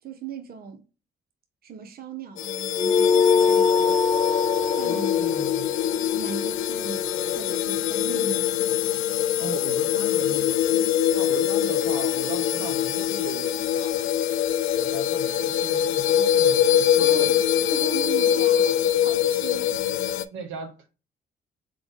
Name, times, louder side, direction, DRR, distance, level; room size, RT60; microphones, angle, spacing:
voice 1, 0.0-0.8 1.6-4.0 4.5-5.1 6.1-8.6 17.0-17.4 17.7-19.8, right 5 dB, 50° right, 0.8 m, -38 dB
sound 1, 2.4-20.2, left 10 dB, 80° left, 0.4 m, -24 dB
sound 2, 2.8-7.6, left 6 dB, 15° left, 0.3 m, -23 dB
voice 2, 4.8-5.7 9.4-14.0 14.7-17.5 20.3-20.9, right 4 dB, 80° right, 1.0 m, -38 dB
3.8 x 3.4 x 3.6 m
cardioid pair, 90°, 20 cm